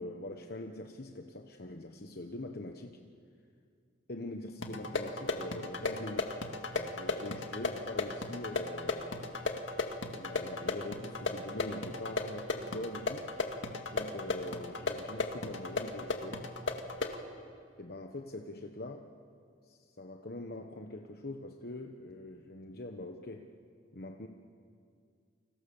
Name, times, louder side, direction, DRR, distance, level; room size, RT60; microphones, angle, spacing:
voice 1, 0.0-3.0 4.1-6.4 6.7-9.5 10.2-13.3 13.9-16.5 17.8-19.1 19.6-23.5 23.9-24.3, left 2 dB, 55° left, 4 dB, 1.2 m, -43 dB
sound 1, 4.6-17.2, left 3 dB, 80° left, 2.0 m, -36 dB
29.5 x 25.5 x 7.1 m, 2.2 s
head